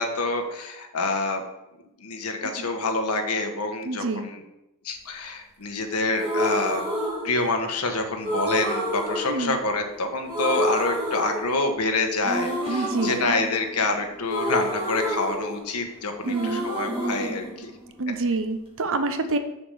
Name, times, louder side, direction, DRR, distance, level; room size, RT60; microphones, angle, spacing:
voice 1, 0.0-1.4 2.0-4.4 4.8-6.8 7.2-17.7, left 2 dB, 80° left, 4 dB, 1.4 m, -27 dB
voice 2, 3.8-4.3 9.3-9.6 12.7-13.2 16.2-16.7 18.0-19.4, right 3 dB, 65° right, 9 dB, 0.9 m, -27 dB
sound 1, 6.1-7.8 8.2-10.0 10.3-11.9 12.2-15.9 16.2-18.3, equal, 25° right, 2.6 m, -29 dB
6.9 x 6.7 x 5.7 m, 0.90 s
head